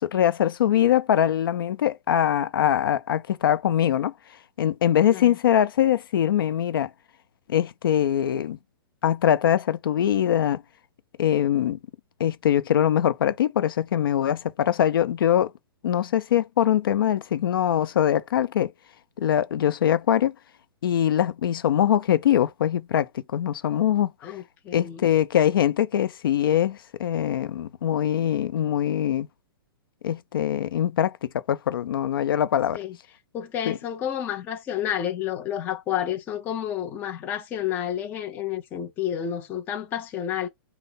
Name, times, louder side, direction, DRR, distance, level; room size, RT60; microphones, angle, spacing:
voice 1, 0.0-4.1 4.6-6.9 7.5-8.6 9.0-10.6 11.2-11.8 12.2-15.5 15.8-18.7 19.2-20.3 20.8-24.1 24.7-29.3 30.0-32.8 33.7-33.8, left 10 dB, 70° left, 0.6 m, -22 dB
voice 2, 24.2-25.0 32.7-33.0 33.3-40.5, left 10 dB, 15° left, 0.6 m, -30 dB
5.5 x 2.1 x 3.9 m
hypercardioid pair, 165°, 12 cm